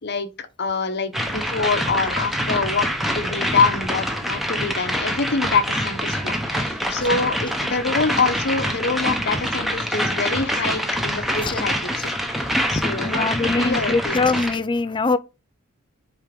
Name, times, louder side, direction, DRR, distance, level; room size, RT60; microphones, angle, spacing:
voice 1, 0.0-2.9 3.1-11.9 12.3-14.4, left 4 dB, 55° left, 1.0 m, -25 dB
sound 1, 1.1-14.6, equal, ahead, 1.1 m, -25 dB
voice 2, 13.0-15.2, left 3 dB, 25° left, 0.4 m, -22 dB
5.8 x 4.5 x 5.1 m
head